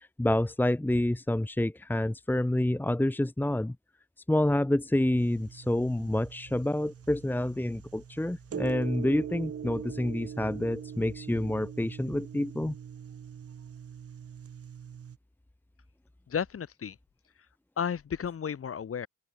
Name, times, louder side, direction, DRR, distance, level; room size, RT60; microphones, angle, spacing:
voice 1, 0.0-3.7 4.3-12.7, left 1 dB, 5° left, 1.5 m, -28 dB
sound 1, 5.2-15.2, right 8 dB, 50° right, 5.7 m, -42 dB
voice 2, 16.3-17.0 17.8-19.1, left 7 dB, 50° left, 7.8 m, -33 dB
open air
supercardioid pair, 75°, 30 cm